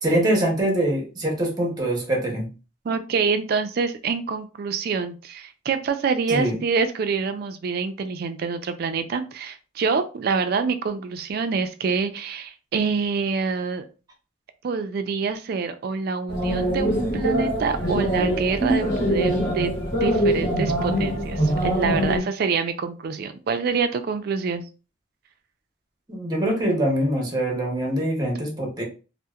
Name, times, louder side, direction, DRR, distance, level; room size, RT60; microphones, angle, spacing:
voice 1, 0.0-2.5 6.3-6.6 26.1-28.8, right 1 dB, 20° right, 0 dB, 0.7 m, -23 dB
voice 2, 2.8-13.9 14.6-19.7 20.0-24.7, right 5 dB, 50° right, 9 dB, 0.3 m, -26 dB
sound 1, 16.3-22.2, equal, 45° left, 1.0 m, -23 dB
2.8 x 2.0 x 2.3 m, 0.34 s
head